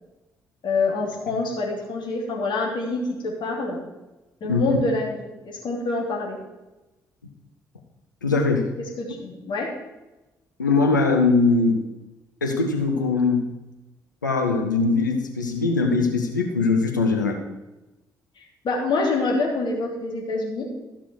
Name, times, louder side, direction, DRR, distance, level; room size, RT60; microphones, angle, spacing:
voice 1, 0.6-3.8 4.4-6.4 9.0-9.7 18.4-20.7, left 3 dB, 50° left, -2 dB, 3.0 m, -26 dB
voice 2, 8.2-8.7 10.6-11.8 12.4-13.5 14.2-17.4, left 3 dB, 90° left, 2 dB, 0.9 m, -21 dB
13.5 x 6.0 x 4.7 m, 1.0 s
figure-of-eight pair, 45°, 10 cm